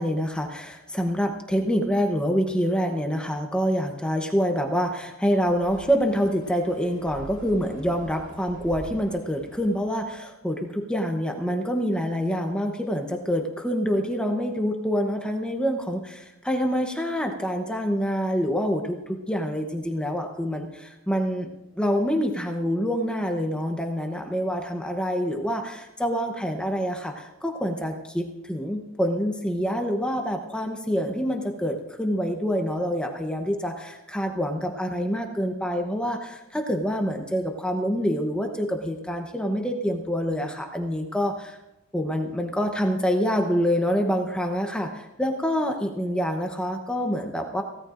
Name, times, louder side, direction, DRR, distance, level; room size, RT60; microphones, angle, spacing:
voice 1, 0.0-21.5 21.8-41.6 41.9-47.6, equal, 5° left, 2 dB, 0.8 m, -26 dB
sound 1, 5.4-10.3, equal, 35° left, 2.2 m, -46 dB
23.5 x 16.5 x 2.5 m, 1.0 s
head